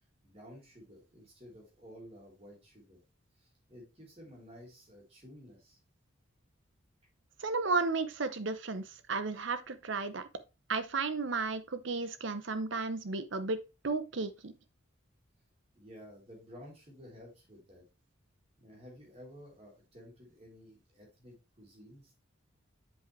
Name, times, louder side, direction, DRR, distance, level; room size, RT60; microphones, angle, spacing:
voice 1, 0.2-3.0 3.4-5.8 15.7-17.8 18.6-22.2, equal, 30° right, 3.0 m, -53 dB
voice 2, 7.4-10.3 10.7-14.5, right 4 dB, 65° right, 0.8 m, -34 dB
7.5 x 5.4 x 3.2 m
head